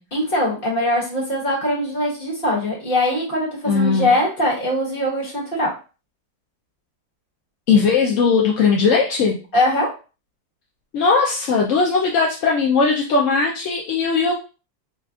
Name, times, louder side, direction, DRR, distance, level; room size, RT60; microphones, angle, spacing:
voice 1, 0.1-5.7 9.5-9.9, left 1 dB, 35° left, -4 dB, 1.5 m, -21 dB
voice 2, 3.7-4.1 7.7-9.4 10.9-14.3, left 4 dB, 65° left, -1 dB, 0.8 m, -18 dB
5.0 x 2.3 x 2.3 m, 0.34 s
omnidirectional pair, 1.8 m